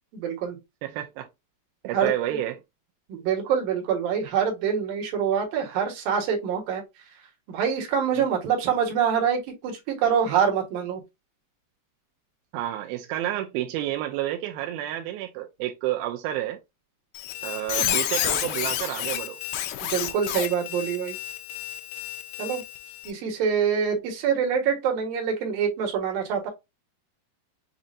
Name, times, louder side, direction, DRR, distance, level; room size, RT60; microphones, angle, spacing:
voice 1, 0.1-0.6 1.9-2.4 3.1-6.8 7.5-11.0 19.8-21.2 22.4-22.6 23.0-26.5, right 7 dB, 65° right, 3.0 m, -25 dB
voice 2, 0.8-1.3 1.8-2.6 8.2-8.3 12.5-16.6 17.4-19.4, right 13 dB, 80° right, 2.2 m, -30 dB
Squeak, 17.1-23.1, left 12 dB, 85° left, 2.6 m, -30 dB
7.5 x 2.6 x 2.6 m
omnidirectional pair, 4.7 m